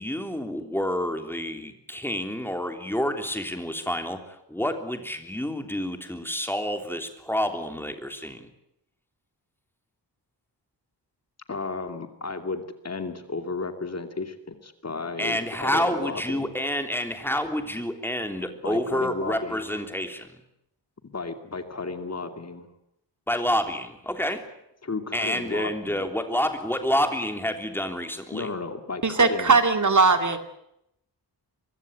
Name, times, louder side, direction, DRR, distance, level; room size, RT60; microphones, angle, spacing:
voice 1, 0.0-8.5 15.2-20.3 23.3-24.4 25.1-28.5, equal, 5° left, 6 dB, 3.3 m, -28 dB
voice 2, 11.5-16.5 18.6-19.6 21.1-22.7 24.8-26.1 28.3-29.5, left 3 dB, 35° left, 7 dB, 2.6 m, -33 dB
voice 3, 29.0-30.4, right 4 dB, 40° right, 8 dB, 2.5 m, -19 dB
24.5 x 22.5 x 8.1 m, 0.80 s
wide cardioid pair, 155°, 43 cm